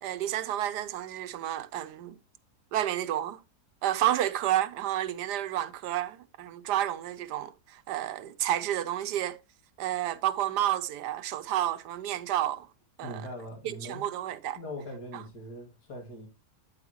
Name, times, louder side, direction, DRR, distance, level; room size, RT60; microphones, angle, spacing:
voice 1, 0.0-2.2 2.7-3.4 3.8-9.4 9.8-12.7 13.0-13.2 13.6-14.6 15.1-15.2, right 12 dB, 80° right, 1.3 m, -30 dB
voice 2, 13.0-14.0 14.6-16.3, left 1 dB, 75° left, 2.9 m, -41 dB
8.9 x 8.6 x 2.9 m
omnidirectional pair, 1.8 m